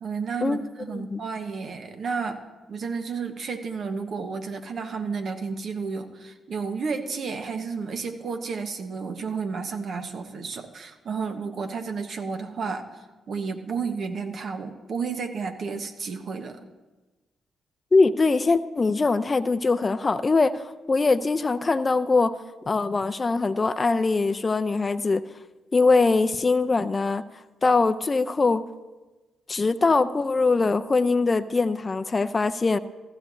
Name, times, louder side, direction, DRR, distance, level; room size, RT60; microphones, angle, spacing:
voice 1, 0.0-16.6, right 5 dB, 60° right, 6 dB, 1.2 m, -32 dB
voice 2, 17.9-22.3 22.7-25.2 25.7-27.2 27.6-28.6 29.5-32.8, left 3 dB, 35° left, 11 dB, 0.5 m, -22 dB
15.0 x 14.0 x 2.7 m, 1.2 s
supercardioid pair, 50°, 0 cm